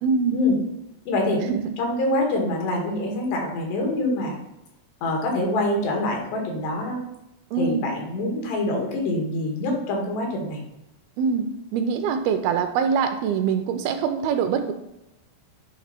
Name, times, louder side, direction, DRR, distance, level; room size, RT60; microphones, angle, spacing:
voice 1, 0.0-0.4 1.5-1.6 7.5-7.9 11.2-14.7, right 6 dB, 80° right, 7 dB, 2.3 m, -24 dB
voice 2, 1.1-1.4 1.8-4.4 5.0-7.0 7.6-10.6, left 2 dB, 85° left, 0 dB, 4.1 m, -25 dB
9.6 x 3.6 x 5.8 m, 0.89 s
omnidirectional pair, 4.7 m